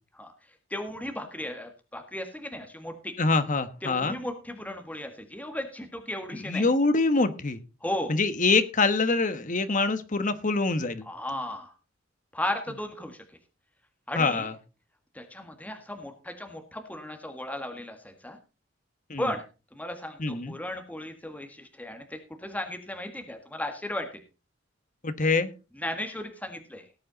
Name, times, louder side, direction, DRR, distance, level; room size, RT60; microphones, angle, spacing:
voice 1, 0.7-3.1 3.8-6.6 7.8-8.1 11.1-11.7 12.3-13.2 14.1-14.5 15.1-18.4 19.2-19.4 19.7-24.2 25.8-26.8, left 1 dB, 10° left, 5 dB, 1.7 m, -35 dB
voice 2, 3.2-4.2 6.3-7.6 8.1-11.1 14.1-14.5 19.1-19.3 20.2-20.5 25.0-25.5, left 3 dB, 40° left, 11 dB, 1.2 m, -25 dB
18.0 x 8.7 x 4.0 m, 0.32 s
head